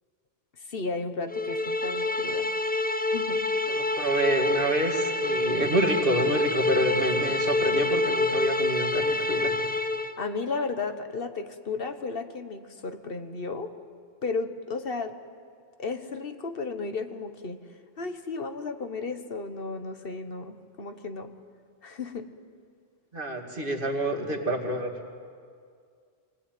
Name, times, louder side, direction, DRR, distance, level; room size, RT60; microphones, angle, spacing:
voice 1, 0.6-2.5 2.9-3.5 10.2-13.7 14.2-15.2 15.8-17.6 18.0-21.3 21.8-22.3, left 4 dB, 60° left, 8 dB, 1.4 m, -34 dB
sound 1, 1.3-10.2, left 2 dB, 10° left, 0.6 m, -27 dB
voice 2, 3.7-9.5 23.1-24.9, right 1 dB, 55° right, 1 dB, 2.5 m, -27 dB
25.0 x 19.5 x 9.2 m, 2.2 s
omnidirectional pair, 1.1 m